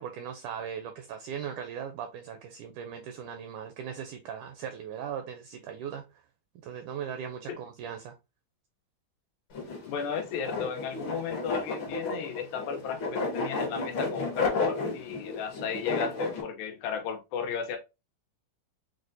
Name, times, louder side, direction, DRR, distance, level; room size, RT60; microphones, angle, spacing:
voice 1, 0.0-6.2 6.6-8.2, right 8 dB, 85° right, 1.8 m, -39 dB
sound 1, 9.5-16.4, left 3 dB, 70° left, 1.2 m, -32 dB
voice 2, 9.9-17.8, left 7 dB, 85° left, 2.4 m, -34 dB
6.1 x 2.1 x 2.6 m
omnidirectional pair, 4.0 m